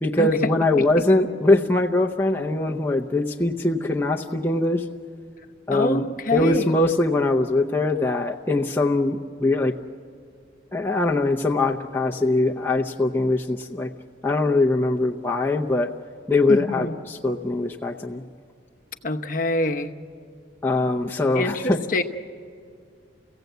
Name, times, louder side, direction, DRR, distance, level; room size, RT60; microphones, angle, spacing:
voice 1, 0.0-4.9 5.7-6.0 6.3-9.8 10.7-13.9 14.2-15.9 16.3-18.2 20.6-21.8, left 2 dB, 10° left, -1 dB, 0.6 m, -22 dB
voice 2, 5.7-6.7 16.5-16.9 19.0-19.9 21.3-22.0, left 1 dB, 45° left, 5 dB, 0.9 m, -25 dB
30.0 x 16.0 x 8.1 m, 2.3 s
head